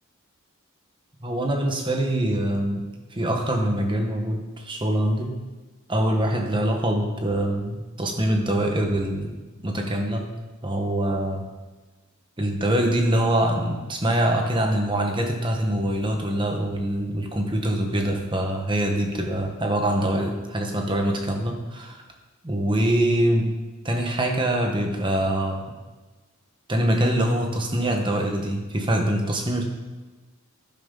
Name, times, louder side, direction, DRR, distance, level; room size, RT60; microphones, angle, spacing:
voice 1, 1.2-5.3 5.9-9.3 9.6-10.3 10.6-11.4 12.4-22.0 22.4-23.6 23.8-25.6 26.7-29.7, right 1 dB, 20° right, 2 dB, 1.3 m, -24 dB
11.0 x 10.5 x 4.0 m, 1.2 s
head